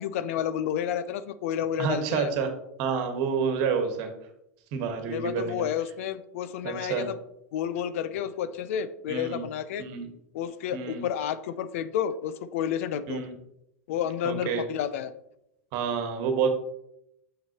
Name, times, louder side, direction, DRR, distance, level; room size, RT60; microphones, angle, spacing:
voice 1, 0.0-2.3 5.1-7.2 7.5-9.9 10.3-13.2 13.9-15.1, left 9 dB, 65° left, 13 dB, 0.5 m, -30 dB
voice 2, 1.8-2.5 2.8-4.1 4.7-5.7 6.6-7.1 9.1-9.4 9.8-10.1 10.7-11.0 13.1-13.3 14.2-14.6 15.7-16.5, right 6 dB, 55° right, 5 dB, 1.4 m, -28 dB
6.9 x 6.1 x 2.9 m, 0.80 s
hypercardioid pair, 105°, 8 cm